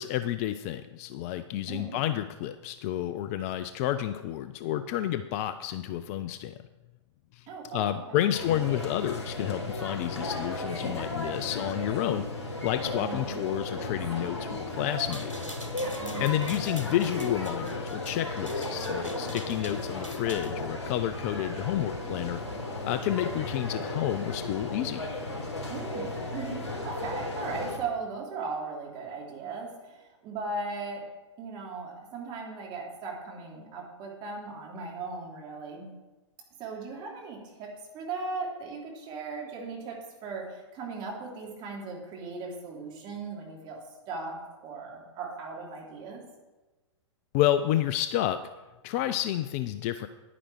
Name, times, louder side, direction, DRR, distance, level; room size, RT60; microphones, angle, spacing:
voice 1, 0.0-6.5 7.3-7.5 7.7-15.3 16.2-22.4 22.8-25.1 47.3-48.4 48.8-50.1, left 12 dB, 30° left, 12 dB, 0.4 m, -30 dB
voice 2, 1.7-2.0 7.5-8.2 13.0-13.4 16.0-16.5 25.7-31.0 31.4-35.9 36.6-43.8 44.1-44.4 44.6-46.2, right 4 dB, 30° right, -2 dB, 3.0 m, -38 dB
sound 1, 8.3-27.8, left 2 dB, 60° left, 3.3 m, -35 dB
sound 2, 15.0-20.5, equal, 90° left, 1.4 m, -44 dB
10.0 x 10.0 x 4.7 m, 1.2 s
figure-of-eight pair, 105°, 16 cm